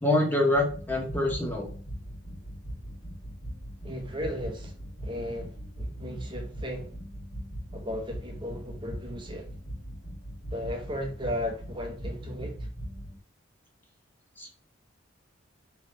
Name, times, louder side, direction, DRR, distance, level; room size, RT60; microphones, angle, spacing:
voice 1, 0.0-1.7 14.4-14.5, left 1 dB, 10° left, 0.8 m, -25 dB
sound 1, 0.5-13.2, equal, 60° left, 1.8 m, -40 dB
voice 2, 3.8-4.7 5.0-6.9 7.7-9.5 10.5-12.7, equal, 25° right, 0.8 m, -36 dB
3.4 x 3.1 x 4.1 m
head